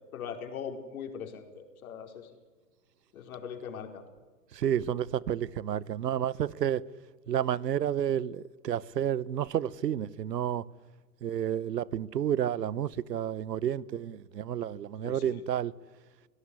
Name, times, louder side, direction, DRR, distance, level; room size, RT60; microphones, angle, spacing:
voice 1, 0.1-2.3 3.1-4.0 15.0-15.4, left 7 dB, 60° left, 4.7 m, -40 dB
voice 2, 4.5-6.8 7.3-10.6 11.2-15.7, right 10 dB, 90° right, 1.1 m, -30 dB
25.0 x 18.0 x 9.8 m
hypercardioid pair, 150°, 48 cm